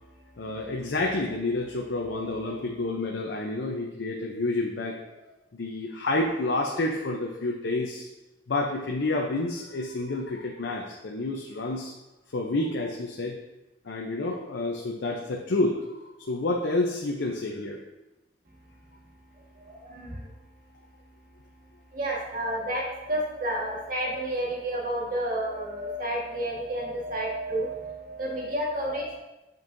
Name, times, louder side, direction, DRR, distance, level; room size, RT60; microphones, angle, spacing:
voice 1, 0.4-5.0 5.5-8.1 8.5-11.9 12.3-13.4 13.9-17.8, left 2 dB, 70° left, 0 dB, 0.6 m, -29 dB
voice 2, 2.1-2.6 19.5-20.3 21.9-29.2, right 1 dB, 50° right, -2 dB, 1.5 m, -31 dB
8.2 x 5.3 x 2.6 m, 0.99 s
head